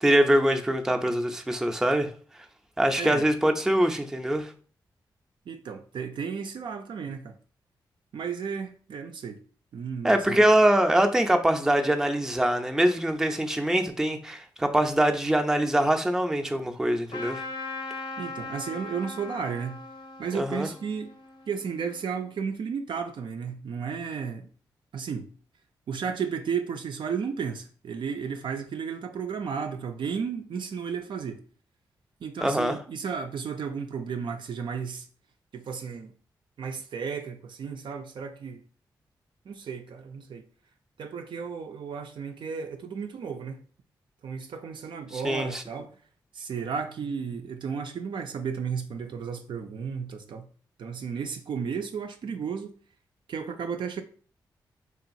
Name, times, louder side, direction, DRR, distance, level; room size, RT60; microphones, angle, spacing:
voice 1, 0.0-2.1 2.8-4.5 10.0-17.4 20.3-20.7 32.4-32.8 45.1-45.6, right 1 dB, 5° right, 0.5 m, -23 dB
voice 2, 5.5-7.4 8.1-9.4 9.7-10.4 18.2-19.8 20.2-21.1 21.5-24.5 24.9-25.3 25.9-31.4 32.2-35.1 35.5-36.1 36.6-38.6 39.5-40.4 41.0-43.6 44.2-46.0 46.3-50.5 50.8-52.7 53.3-54.0, right 6 dB, 65° right, 0.4 m, -33 dB
Trumpet, 17.1-22.1, left 3 dB, 60° left, 0.6 m, -39 dB
2.9 x 2.3 x 2.6 m
supercardioid pair, 40°, 9 cm